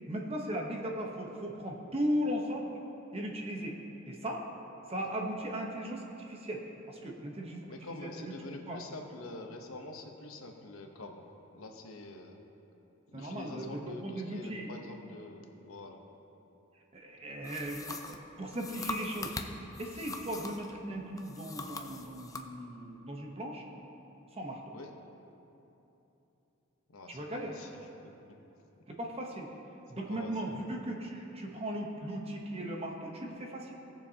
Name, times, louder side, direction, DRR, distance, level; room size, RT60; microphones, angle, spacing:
voice 1, 0.1-2.7 3.1-3.8 4.1-4.4 4.9-6.6 6.9-8.8 13.1-14.7 16.9-18.0 18.4-19.3 19.8-23.7 24.3-24.7 27.1-27.6 28.9-29.5 29.9-33.7, equal, 30° right, 1 dB, 0.9 m, -37 dB
voice 2, 7.7-11.2 11.5-12.4 13.1-16.0 24.7-24.9 26.9-28.1 28.8-28.9 29.9-30.6, left 2 dB, 85° left, 3 dB, 1.0 m, -46 dB
sound 1, 17.4-20.7 21.2-22.5, left 3 dB, 15° left, 0.4 m, -42 dB
17.5 x 6.9 x 2.8 m, 3.0 s
head